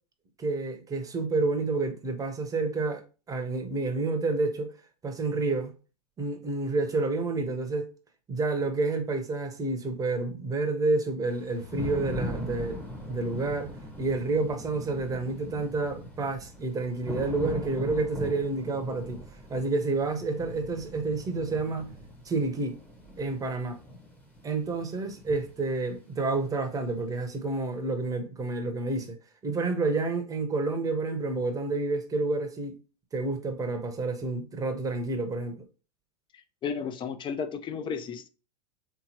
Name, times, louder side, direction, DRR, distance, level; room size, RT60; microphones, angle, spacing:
voice 1, 0.4-3.0 3.3-4.7 5.0-5.7 6.2-7.9 8.3-12.8 13.1-13.7 14.0-19.2 19.5-21.9 22.2-22.7 23.2-23.8 24.4-29.2 29.4-32.7 33.1-35.6, right 3 dB, 15° right, 0.8 m, -29 dB
Thunder / Rain, 11.3-27.1, equal, 5° left, 0.9 m, -41 dB
voice 2, 36.3-38.3, left 6 dB, 25° left, 0.5 m, -34 dB
3.6 x 2.9 x 2.8 m
hypercardioid pair, 105°, 20 cm